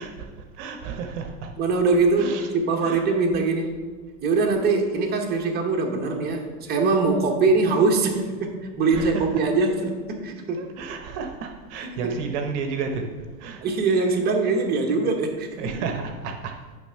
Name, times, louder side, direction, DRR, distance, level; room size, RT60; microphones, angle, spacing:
voice 1, 0.0-1.5 2.2-2.5 2.8-3.0 8.9-9.4 10.6-13.1 13.4-13.6 15.6-16.5, right 5 dB, 50° right, 4 dB, 0.9 m, -32 dB
voice 2, 1.6-3.8 4.2-10.7 11.8-12.2 13.6-15.7, right 3 dB, 20° right, 1 dB, 1.0 m, -23 dB
9.9 x 3.4 x 5.6 m, 1.5 s
supercardioid pair, 140°, 45 cm